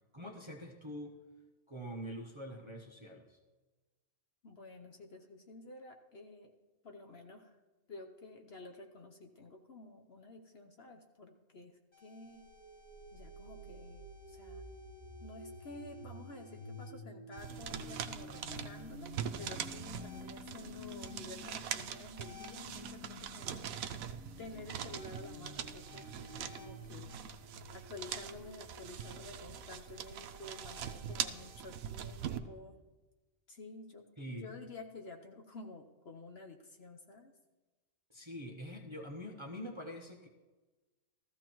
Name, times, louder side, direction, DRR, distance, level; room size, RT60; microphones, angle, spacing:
voice 1, 0.1-1.2 1.7-3.4 34.2-34.5 38.1-40.3, equal, 25° right, 1 dB, 0.8 m, -45 dB
voice 2, 4.4-6.5 6.8-7.6 7.9-12.4 13.1-14.6 15.2-23.7 24.4-27.0 27.7-32.8 33.5-37.3, left 2 dB, 50° left, 4 dB, 1.0 m, -51 dB
sound 1, 11.9-31.7, left 1 dB, 80° left, 3.1 m, -51 dB
sound 2, 17.4-32.4, right 9 dB, 75° right, 1.1 m, -43 dB
14.5 x 14.5 x 3.0 m, 1.2 s
omnidirectional pair, 1.5 m